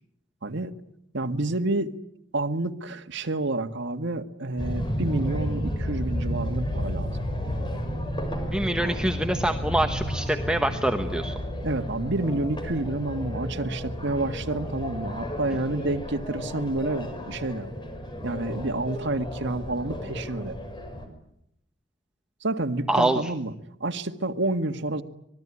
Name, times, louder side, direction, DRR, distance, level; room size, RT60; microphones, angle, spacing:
voice 1, 0.4-0.7 1.1-1.9 2.3-7.1 8.8-8.9 11.6-17.7 18.2-20.6 22.4-23.5 23.8-25.0, right 2 dB, 65° right, 7 dB, 1.8 m, -29 dB
sound 1, 4.6-21.1, equal, 25° left, 5.2 m, -32 dB
voice 2, 8.5-11.4 22.9-23.3, right 1 dB, 5° right, 6 dB, 1.1 m, -25 dB
25.5 x 20.5 x 9.9 m, 0.78 s
head